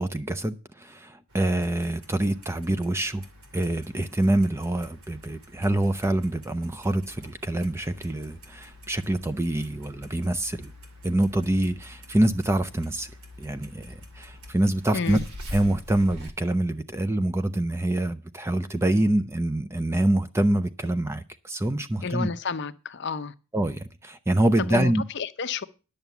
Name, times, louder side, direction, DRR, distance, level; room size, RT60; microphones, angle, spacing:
voice 1, 0.0-3.2 3.5-10.7 11.0-13.1 13.4-15.2 15.5-22.3 23.5-25.0, right 1 dB, 10° right, 0.5 m, -25 dB
Clock, 1.3-16.3, left 1 dB, 80° right, 2.5 m, -46 dB
voice 2, 22.0-23.3 24.6-25.7, left 5 dB, 50° left, 0.6 m, -31 dB
11.0 x 6.7 x 7.0 m
head